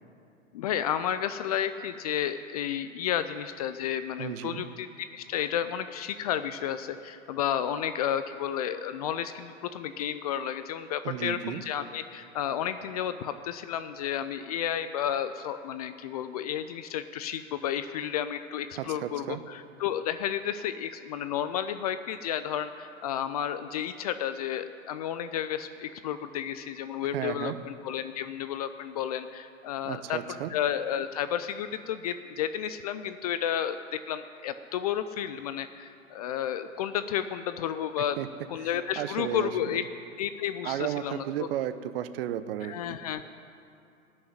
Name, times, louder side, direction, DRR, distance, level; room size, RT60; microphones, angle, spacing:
voice 1, 0.5-38.2 38.5-39.8 40.2-41.5 42.6-43.2, left 10 dB, 30° left, 11 dB, 0.4 m, -32 dB
voice 2, 4.2-4.6 11.0-11.6 18.8-19.4 27.1-27.5 29.8-30.5 38.2-38.3 39.0-39.8 40.6-43.0, right 12 dB, 45° right, 12 dB, 0.8 m, -33 dB
17.0 x 6.5 x 9.7 m, 2.7 s
figure-of-eight pair, 105°, 40 cm